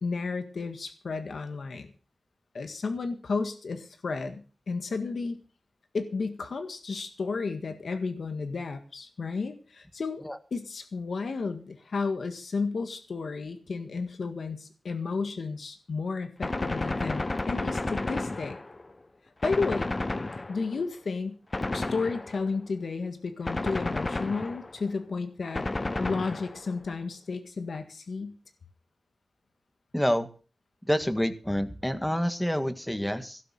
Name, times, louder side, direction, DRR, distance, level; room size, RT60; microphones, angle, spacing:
voice 1, 0.0-1.9 2.5-5.4 5.9-10.2 10.5-18.6 19.4-19.9 20.5-21.4 21.7-25.7 26.0-28.3, left 4 dB, 90° left, 7 dB, 1.7 m, -32 dB
Gunshot gunfire, 16.4-18.9 19.4-20.8 21.5-22.6 23.5-24.8 25.6-26.8, left 2 dB, 35° left, 0.9 m, -32 dB
voice 2, 29.9-30.3 30.8-33.4, equal, 5° left, 9 dB, 1.6 m, -28 dB
17.0 x 6.9 x 7.6 m, 0.37 s
wide cardioid pair, 110°, 0 cm